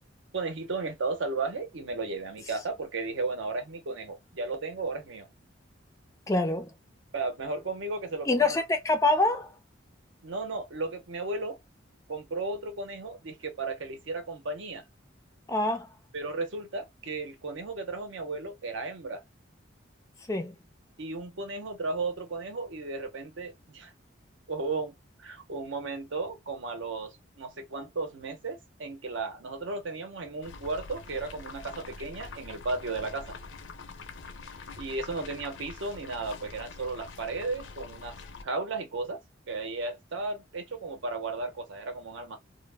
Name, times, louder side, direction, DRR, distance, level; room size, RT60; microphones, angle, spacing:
voice 1, 0.3-5.3 7.1-8.6 10.2-11.6 12.1-14.8 16.1-19.2 21.0-23.9 24.5-24.9 25.2-33.4 34.8-38.2 38.4-39.2 39.5-42.4, right 3 dB, 70° right, 0.7 m, -34 dB
voice 2, 6.3-6.7 8.3-9.5 15.5-15.9 20.3-20.5, left 2 dB, 15° left, 0.4 m, -25 dB
sound 1, 30.4-38.4, left 4 dB, 70° left, 0.5 m, -45 dB
2.1 x 2.0 x 3.3 m
head